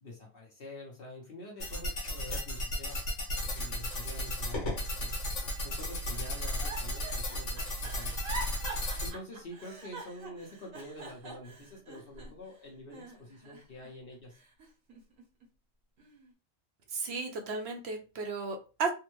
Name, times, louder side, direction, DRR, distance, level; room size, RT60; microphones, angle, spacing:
voice 1, 0.0-3.0 3.5-5.1 5.6-8.2 9.0-14.4, left 1 dB, 50° left, -2 dB, 0.9 m, -47 dB
sound 1, 1.6-9.1, left 1 dB, 65° left, 1.3 m, -34 dB
Giggle, 6.1-12.5 12.9-13.9 14.3-15.4 16.0-16.3, right 3 dB, 85° right, 1.4 m, -45 dB
voice 2, 16.9-18.9, right 4 dB, 65° right, 4 dB, 0.8 m, -34 dB
3.4 x 2.1 x 3.0 m, 0.32 s
omnidirectional pair, 1.3 m